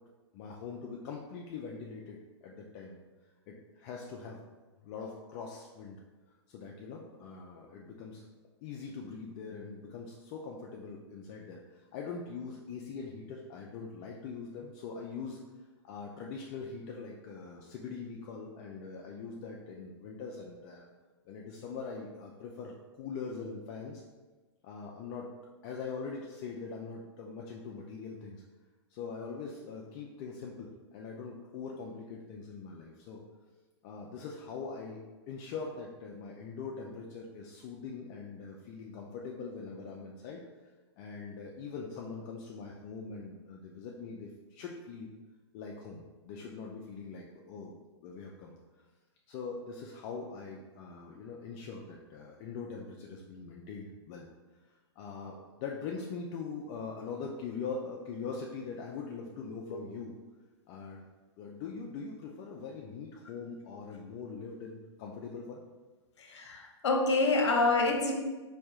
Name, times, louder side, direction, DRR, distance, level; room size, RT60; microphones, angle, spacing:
voice 1, 0.3-3.0 3.5-4.5 4.8-6.0 6.5-8.2 8.6-15.4 15.8-20.9 21.3-24.0 24.6-25.3 25.6-28.4 28.9-33.2 33.8-40.4 41.0-45.1 45.5-47.8 48.0-48.5 49.3-54.3 54.7-60.2 60.7-61.0 61.4-65.6, left 5 dB, 35° left, -1 dB, 0.4 m, -42 dB
voice 2, 66.2-68.1, left 3 dB, 75° left, 2 dB, 0.7 m, -27 dB
4.3 x 2.7 x 2.4 m, 1.2 s
hypercardioid pair, 120°, 15 cm